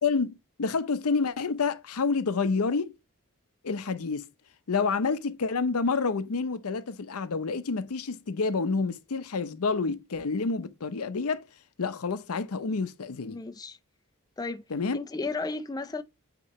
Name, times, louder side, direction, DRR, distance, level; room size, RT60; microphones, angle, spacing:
voice 1, 0.0-2.9 3.6-4.3 4.7-11.4 11.8-13.4 14.7-15.0, left 4 dB, 70° left, 0.6 m, -28 dB
voice 2, 13.2-13.8 14.4-14.6 14.9-16.0, left 3 dB, 15° left, 0.4 m, -34 dB
8.5 x 3.0 x 4.1 m
head